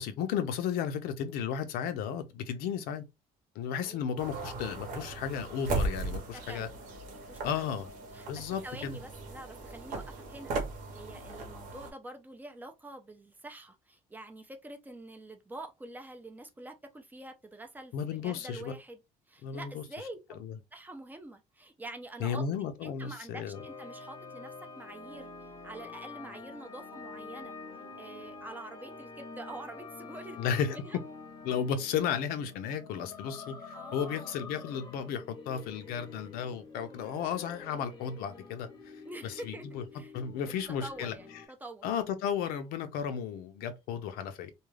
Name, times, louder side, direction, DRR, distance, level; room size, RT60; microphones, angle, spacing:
voice 1, 0.0-3.0 3.6-6.7 7.4-7.9 8.3-9.0 17.9-18.7 19.4-19.8 20.4-20.5 22.2-23.6 30.4-30.8 31.4-38.7 39.2-39.8 40.1-41.1 41.8-44.5, left 8 dB, 85° left, 0.5 m, -34 dB
sound 1, 4.2-11.9, right 3 dB, 65° right, 1.0 m, -37 dB
voice 2, 6.3-6.7 7.1-7.7 8.1-19.0 19.3-20.4 20.7-22.5 22.8-25.3 25.6-27.5 28.0-30.4 30.6-31.0 33.7-34.4 39.0-39.7 39.9-40.1 40.7-41.9, right 2 dB, 10° right, 0.5 m, -46 dB
sound 2, 23.5-41.5, left 4 dB, 30° left, 0.7 m, -47 dB
2.4 x 2.2 x 3.2 m
cardioid pair, 140°, 15 cm